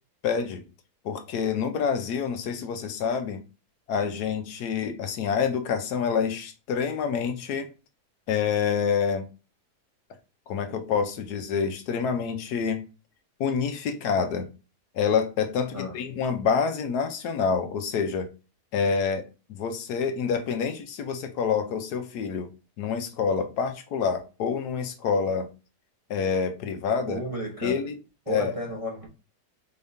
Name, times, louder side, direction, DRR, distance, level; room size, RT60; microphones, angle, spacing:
voice 1, 0.2-0.6 1.0-3.4 3.9-7.7 8.3-9.3 10.5-12.8 13.4-14.5 14.9-18.3 18.7-22.5 22.8-25.5 26.1-27.2 27.6-27.9 28.3-28.5, left 6 dB, 75° left, 1.2 m, -27 dB
voice 2, 27.1-27.8 28.3-29.1, equal, 25° right, 0.8 m, -32 dB
4.6 x 3.5 x 2.6 m
omnidirectional pair, 1.8 m